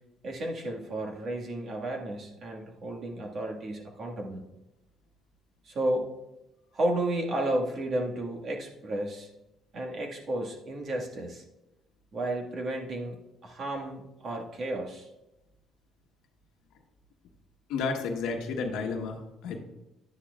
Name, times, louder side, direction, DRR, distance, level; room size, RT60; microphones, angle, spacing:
voice 1, 0.2-4.4 5.6-6.1 6.7-9.3 9.7-11.4 12.1-15.1, right 1 dB, 50° right, 0 dB, 1.7 m, -32 dB
voice 2, 17.7-19.6, left 4 dB, 80° left, 3 dB, 1.1 m, -32 dB
11.0 x 9.7 x 2.4 m, 0.96 s
supercardioid pair, 80°, 0 cm